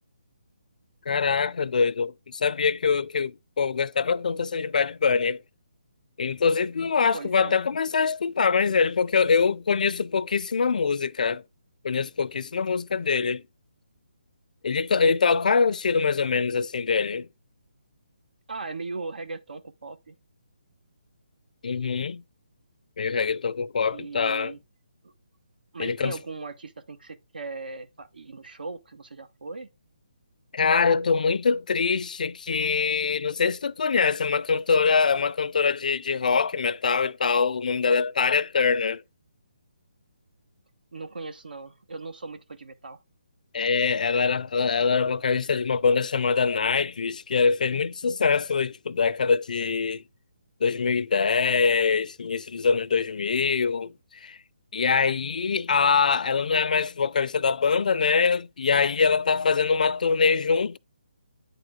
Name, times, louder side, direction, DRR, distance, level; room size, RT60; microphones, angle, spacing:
voice 1, 1.1-5.4 6.2-11.4 11.8-13.4 14.6-17.3 21.6-22.2 23.0-24.5 25.8-26.1 30.5-39.0 43.5-50.0 50.6-53.9 54.2-54.4 54.7-60.8, left 5 dB, 60° left, 0.4 m, -24 dB
voice 2, 7.1-7.6 18.5-20.1 23.9-24.6 25.0-25.1 25.7-29.7 40.9-43.0, right 3 dB, 90° right, 1.1 m, -38 dB
9.1 x 3.8 x 3.6 m
hypercardioid pair, 165°, 5 cm